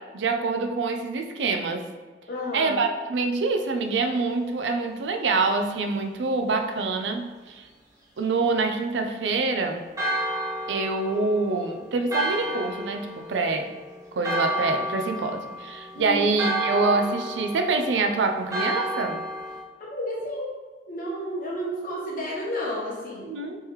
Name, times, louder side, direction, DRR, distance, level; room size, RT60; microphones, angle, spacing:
voice 1, 0.0-1.8 2.5-7.6 8.2-9.8 10.7-13.7 14.1-19.2 23.2-23.6, right 3 dB, 85° right, 5 dB, 0.4 m, -26 dB
voice 2, 2.3-2.8 15.9-16.2 19.8-20.5 20.9-23.3, equal, 50° left, -4 dB, 1.0 m, -31 dB
Church bell, 10.0-19.6, right 1 dB, 20° right, 0.8 m, -31 dB
3.5 x 3.1 x 3.1 m, 1.4 s
head